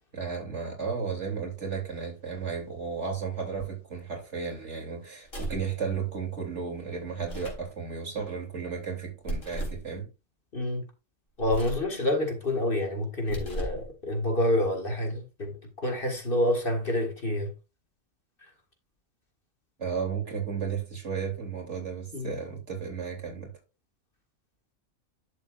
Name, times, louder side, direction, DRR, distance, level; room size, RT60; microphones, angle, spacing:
voice 1, 0.1-10.1 19.8-23.5, right 6 dB, 60° right, 3.4 m, -34 dB
sound 1, 5.2-5.7 7.2-7.7 9.2-9.9 11.4-11.9 13.2-13.9, right 1 dB, 70° left, 4.0 m, -35 dB
voice 2, 10.5-10.9 11.4-17.5 22.1-22.4, left 1 dB, 45° left, 2.1 m, -28 dB
11.0 x 7.2 x 2.5 m
omnidirectional pair, 1.4 m